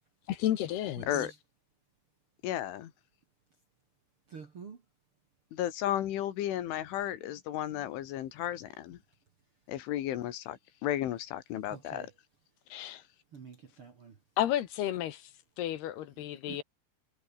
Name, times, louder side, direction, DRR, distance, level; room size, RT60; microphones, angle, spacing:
voice 1, 0.3-1.1 12.7-13.0 14.4-15.3 15.6-16.6, left 12 dB, 70° left, 3.1 m, -32 dB
voice 2, 1.0-1.3 4.3-4.8 11.7-12.1 13.3-14.1 16.5-16.6, right 6 dB, 45° right, 2.0 m, -47 dB
voice 3, 2.4-2.9 5.5-9.0 9.7-12.1, left 12 dB, 90° left, 4.5 m, -34 dB
omnidirectional pair, 5.4 m